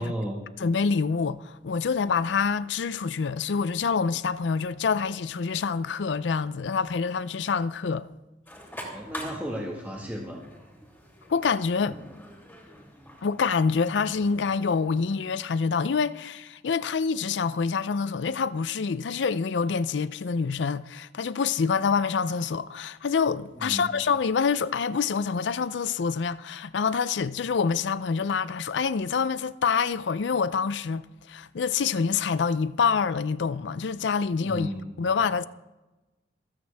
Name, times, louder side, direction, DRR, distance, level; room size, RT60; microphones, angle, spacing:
voice 1, 0.0-0.5 8.8-10.5 23.5-23.9 34.4-34.8, equal, 10° right, 1.7 m, -34 dB
voice 2, 0.6-8.1 11.3-12.0 13.2-34.7 35.0-35.4, left 5 dB, 75° left, 0.5 m, -26 dB
sound 1, 8.5-15.2, equal, 10° left, 2.9 m, -45 dB
26.5 x 9.0 x 3.5 m
head